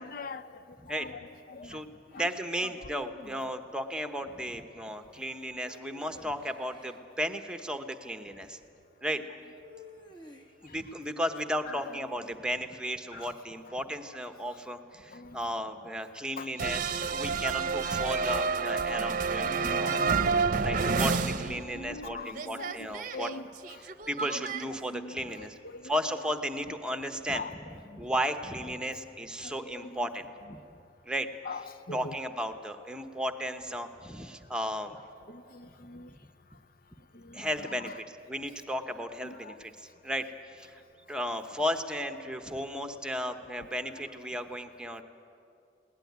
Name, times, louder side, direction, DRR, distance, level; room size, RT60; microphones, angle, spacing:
voice 1, 0.0-1.8 2.1-3.4 10.7-10.8 11.3-12.4 13.1-13.4 14.1-14.2 15.1-15.5 16.4-16.5 17.8-18.1 19.3-20.5 21.2-23.8 24.2-26.2 27.3-28.0 28.3-28.4 29.4-30.1 30.5-30.6 31.4-32.2 35.3-36.1 37.1-38.0 39.2-39.6 43.6-44.2, left 3 dB, 55° left, 0.6 m, -44 dB
voice 2, 1.6-8.6 9.0-9.2 10.6-20.0 20.6-23.3 24.1-25.5 25.8-27.4 28.0-30.6 31.1-31.3 31.9-35.0 37.3-39.7 40.0-40.3 40.5-40.8 41.1-45.0, equal, 5° right, 1.0 m, -34 dB
sound 1, 5.6-7.0 9.6-10.8, left 1 dB, 25° left, 1.3 m, -51 dB
sound 2, 16.6-22.1 22.3-24.6, right 5 dB, 50° right, 0.7 m, -29 dB
21.5 x 18.0 x 9.5 m
head